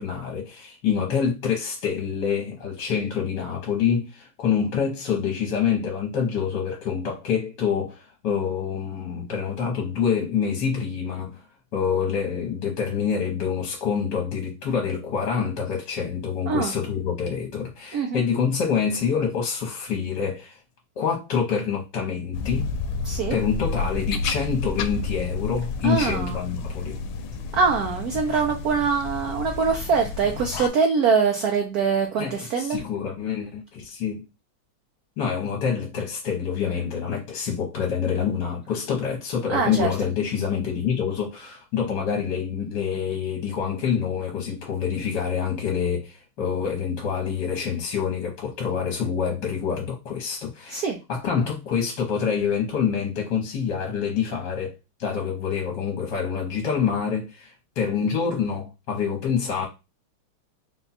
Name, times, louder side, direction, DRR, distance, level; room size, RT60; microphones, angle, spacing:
voice 1, 0.0-11.4 11.7-20.6 21.0-22.7 23.3-27.0 32.2-34.2 35.2-50.8 51.1-59.7, left 7 dB, 65° left, 1.5 m, -26 dB
sound 1, 22.3-30.7, left 4 dB, 80° left, 1.4 m, -31 dB
voice 2, 23.0-23.4 25.8-26.4 27.5-32.8 39.5-39.9 50.7-51.0, right 5 dB, 65° right, 0.9 m, -23 dB
4.1 x 2.3 x 4.0 m
omnidirectional pair, 2.2 m